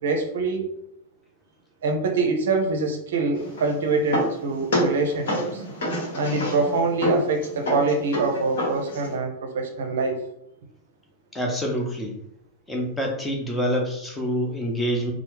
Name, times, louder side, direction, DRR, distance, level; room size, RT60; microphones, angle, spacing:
voice 1, 0.0-0.7 1.8-5.6 6.1-10.2, right 3 dB, 60° right, 4 dB, 0.5 m, -25 dB
sound 1, 3.4-9.2, equal, 60° left, 1.0 m, -28 dB
voice 2, 11.3-12.1 12.7-15.1, equal, 10° left, 0 dB, 0.7 m, -26 dB
3.1 x 2.0 x 3.0 m, 0.78 s
figure-of-eight pair, 90°, 0 cm